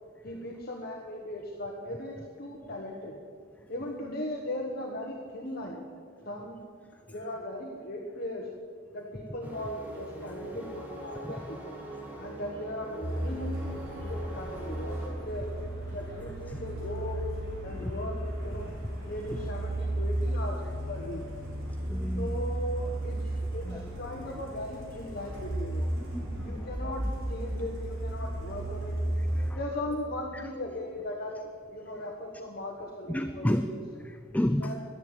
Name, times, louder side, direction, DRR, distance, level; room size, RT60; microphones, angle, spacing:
voice 1, 0.2-3.1 3.7-5.8 6.2-6.6 7.1-8.5 8.9-11.6 12.2-13.7 14.0-15.5 15.9-17.2 17.6-18.7 19.0-20.6 20.9-21.2 22.2-23.2 23.5-25.8 26.4-27.0 27.3-28.9 29.5-31.4 31.7-33.8 34.6-34.8, left 1 dB, 50° left, -1 dB, 1.4 m, -38 dB
sound 1, 9.4-15.1, right 2 dB, 10° right, 2.3 m, -42 dB
Truck, 13.0-29.5, right 1 dB, 70° right, 4.0 m, -34 dB
voice 2, 21.9-22.3 23.7-23.9 26.0-26.7 29.4-29.6 30.3-30.4 33.1-33.7 34.0-34.7, left 1 dB, 5° left, 9 dB, 0.4 m, -32 dB
12.5 x 10.5 x 8.9 m, 2.1 s
head